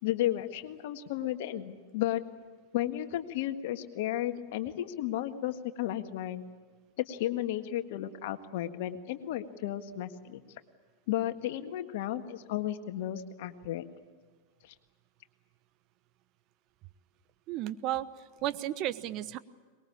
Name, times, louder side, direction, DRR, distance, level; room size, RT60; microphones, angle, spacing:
voice 1, 0.0-2.2 2.7-6.4 7.0-10.4 11.1-13.8 14.6-14.7, left 13 dB, 60° left, 8 dB, 1.7 m, -33 dB
voice 2, 17.5-18.1 18.4-19.4, right 13 dB, 45° right, 14 dB, 1.0 m, -33 dB
23.5 x 21.5 x 8.7 m, 1.5 s
hypercardioid pair, 95°, 0 cm